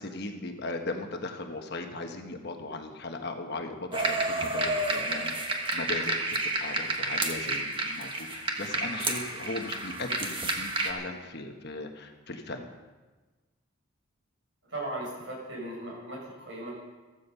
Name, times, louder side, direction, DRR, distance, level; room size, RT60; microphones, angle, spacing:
voice 1, 0.0-12.7, left 2 dB, 50° left, 4 dB, 1.3 m, -38 dB
sound 1, 3.9-10.9, right 2 dB, 25° right, 1.4 m, -30 dB
voice 2, 14.7-16.7, right 1 dB, 60° right, -4 dB, 6.8 m, -37 dB
15.5 x 13.5 x 5.6 m, 1.3 s
head